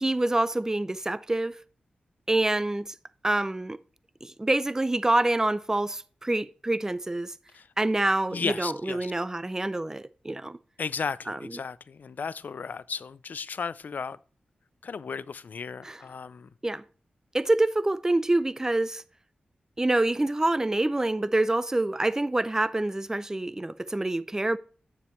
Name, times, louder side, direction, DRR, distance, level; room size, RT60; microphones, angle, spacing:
voice 1, 0.0-1.6 2.3-2.9 3.2-3.8 4.2-7.3 7.8-10.6 11.3-11.5 15.8-16.0 16.6-16.8 17.3-19.0 19.8-24.6, right 2 dB, 15° right, 0.4 m, -26 dB
voice 2, 8.3-9.1 10.8-14.2 14.8-16.5, left 5 dB, 65° left, 0.4 m, -34 dB
10.0 x 6.9 x 3.1 m
cardioid pair, 70°, 3 cm